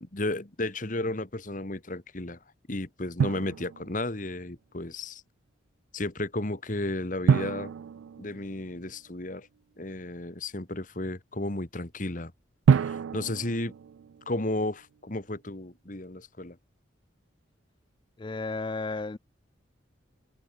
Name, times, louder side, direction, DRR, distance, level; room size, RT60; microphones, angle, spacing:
voice 1, 0.0-2.4 2.7-5.2 5.9-7.7 8.2-9.5 9.8-12.3 12.7-13.7 14.3-16.6, left 2 dB, 40° left, 1.7 m, -33 dB
Drum, 3.2-4.3 7.3-9.1 12.7-14.7, right 6 dB, 80° right, 0.3 m, -27 dB
voice 2, 18.2-19.2, left 3 dB, 25° left, 0.4 m, -33 dB
head